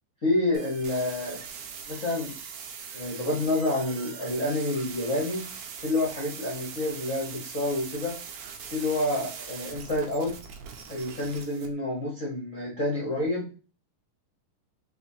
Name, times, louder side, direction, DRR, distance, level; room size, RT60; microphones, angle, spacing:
voice 1, 0.2-1.4 1.9-2.4 2.9-5.4 5.8-8.2 8.7-10.3 10.9-13.5, left 2 dB, 90° left, -5 dB, 0.7 m, -28 dB
sound 1, 0.5-11.7, right 6 dB, 90° right, 2.4 m, -41 dB
5.6 x 3.0 x 2.8 m, 0.34 s
omnidirectional pair, 3.8 m